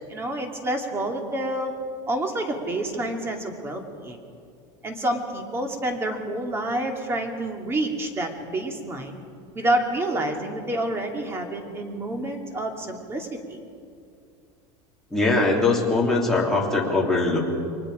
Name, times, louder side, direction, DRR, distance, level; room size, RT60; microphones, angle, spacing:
voice 1, 0.1-1.7 2.1-4.2 4.8-9.2 9.5-13.6, right 1 dB, 15° right, 3 dB, 2.5 m, -28 dB
voice 2, 15.1-17.4, left 3 dB, 5° left, -3 dB, 3.3 m, -21 dB
30.0 x 23.0 x 5.0 m, 2.4 s
supercardioid pair, 160°, 14 cm